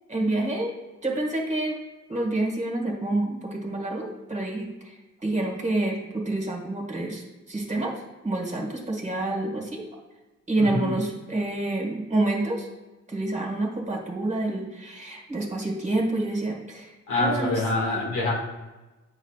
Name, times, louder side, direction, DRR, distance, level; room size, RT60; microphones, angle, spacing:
voice 1, 0.1-0.7 1.0-1.8 2.1-7.9 8.2-9.8 10.5-12.7 13.1-16.9 17.2-17.6, right 2 dB, 25° right, 0 dB, 1.8 m, -28 dB
voice 2, 10.6-10.9 17.1-18.3, left 2 dB, 85° left, -3 dB, 2.0 m, -25 dB
8.3 x 5.5 x 2.4 m, 1.1 s
cardioid pair, 90°, 30 cm